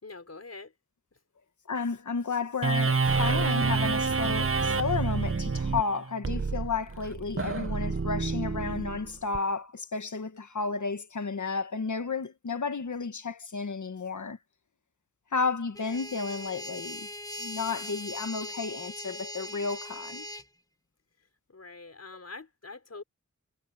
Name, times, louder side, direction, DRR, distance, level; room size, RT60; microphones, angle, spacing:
voice 1, 0.0-0.7 1.1-1.2 21.5-23.0, left 3 dB, 60° left, 4.9 m, -44 dB
voice 2, 1.7-14.4 15.3-17.1 17.4-20.3, left 4 dB, 85° left, 1.7 m, -32 dB
sound 1, 2.6-9.4, right 4 dB, 45° right, 1.2 m, -28 dB
sound 2, 15.7-20.5, left 1 dB, 10° left, 1.4 m, -40 dB
wide cardioid pair, 85°, 29 cm